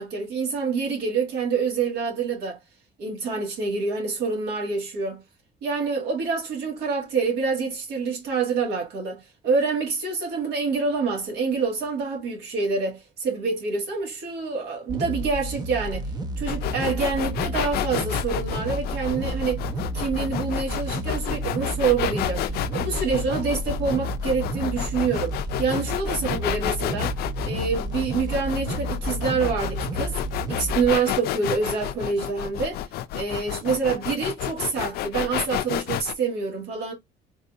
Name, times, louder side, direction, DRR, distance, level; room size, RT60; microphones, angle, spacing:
voice 1, 0.0-2.6 3.0-5.2 5.6-16.1 16.4-19.6 19.9-22.5 22.7-27.1 27.4-30.2 30.5-32.8 33.1-36.9, right 5 dB, 80° right, 1.8 m, -26 dB
sound 1, 14.9-30.9, right 1 dB, 25° right, 0.6 m, -31 dB
sound 2, 16.5-36.1, left 12 dB, 70° left, 0.4 m, -30 dB
4.0 x 2.7 x 2.4 m
cardioid pair, 110°, 17 cm